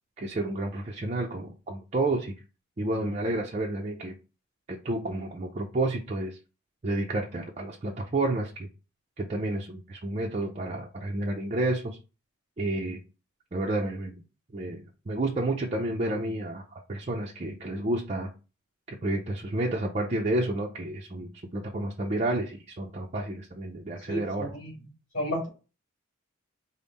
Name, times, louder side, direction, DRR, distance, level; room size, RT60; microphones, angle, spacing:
voice 1, 0.2-2.3 2.8-4.2 4.7-6.4 6.8-8.7 9.2-12.0 12.6-13.0 13.5-14.1 14.5-16.6 16.9-18.3 18.9-24.5, right 2 dB, 30° right, -1 dB, 0.5 m, -30 dB
voice 2, 24.0-24.8 25.1-25.5, equal, 35° left, -3 dB, 2.5 m, -32 dB
5.3 x 2.1 x 4.0 m, 0.32 s
head